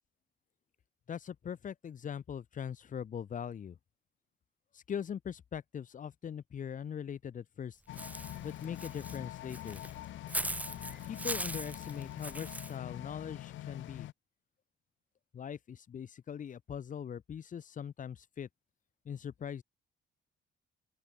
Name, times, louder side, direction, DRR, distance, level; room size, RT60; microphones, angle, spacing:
voice 1, 1.1-3.8 4.7-7.8 8.4-9.8 11.1-14.1 15.3-18.5 19.1-19.6, left 8 dB, 40° left, 0.7 m, -41 dB
sound 1, 7.9-14.1, left 14 dB, 75° left, 0.7 m, -44 dB
Walk footsteps / Bird, 8.0-12.7, right 1 dB, 5° right, 1.8 m, -40 dB
open air
cardioid pair, 90°, 20 cm